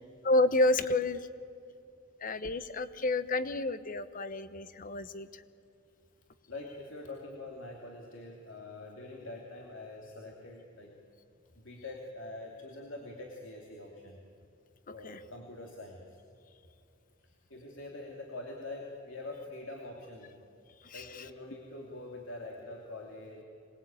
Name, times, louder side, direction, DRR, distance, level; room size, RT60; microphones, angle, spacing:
voice 1, 0.2-1.3 2.2-5.4 15.0-15.2 20.8-21.2, left 2 dB, 45° left, 13 dB, 1.0 m, -30 dB
voice 2, 6.5-10.9 11.5-14.2 14.9-16.2 17.2-20.3 20.9-23.4, left 2 dB, 70° left, 0 dB, 2.7 m, -44 dB
26.5 x 20.5 x 8.8 m, 2.6 s
head